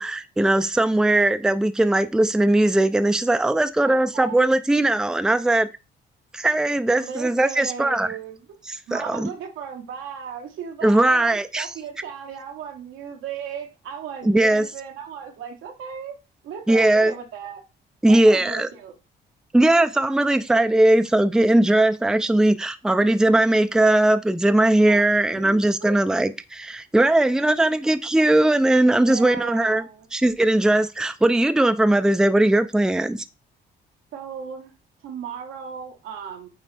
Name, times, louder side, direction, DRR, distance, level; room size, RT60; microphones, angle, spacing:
voice 1, 0.0-5.7 6.3-8.2 8.7-9.3 10.8-11.7 14.2-14.7 16.7-17.1 18.0-18.7 19.5-33.2, right 1 dB, 5° right, 0.5 m, -19 dB
voice 2, 3.8-4.4 7.0-8.4 8.9-16.2 16.4-17.6 18.1-18.9 24.9-25.0 25.3-25.9 28.9-30.1 34.1-34.7 35.0-36.5, right 7 dB, 90° right, 1.6 m, -36 dB
9.1 x 3.2 x 3.5 m
cardioid pair, 90°, 20 cm